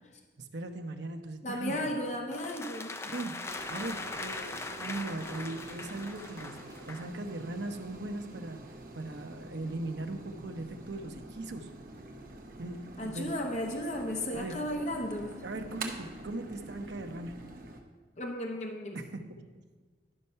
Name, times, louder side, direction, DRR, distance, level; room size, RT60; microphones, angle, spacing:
voice 1, 0.4-1.9 3.0-3.3 3.7-6.6 6.9-8.6 8.9-11.7 12.6-13.4 14.3-14.5 15.4-17.3 18.9-19.2, right 2 dB, 75° right, 6 dB, 0.8 m, -39 dB
voice 2, 1.4-2.9 13.0-15.3 18.2-19.0, left 1 dB, 40° left, 2 dB, 0.8 m, -34 dB
sound 1, 2.3-7.1, left 3 dB, 15° left, 0.3 m, -41 dB
sound 2, 3.4-17.8, right 2 dB, 50° right, 1.0 m, -46 dB
11.0 x 5.4 x 5.6 m, 1.4 s
head